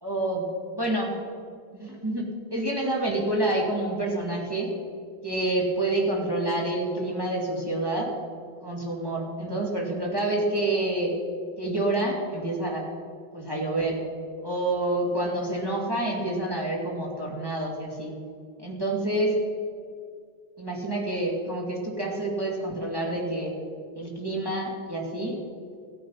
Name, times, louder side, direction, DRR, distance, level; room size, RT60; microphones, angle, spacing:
voice 1, 0.0-0.5 0.8-1.1 1.7-4.7 5.2-8.1 8.6-11.1 11.6-12.8 13.3-14.0 14.4-18.1 18.6-19.4 20.6-23.5 24.0-25.4, right 2 dB, 10° right, -2 dB, 2.1 m, -28 dB
16.0 x 8.5 x 5.6 m, 2.2 s
omnidirectional pair, 2.4 m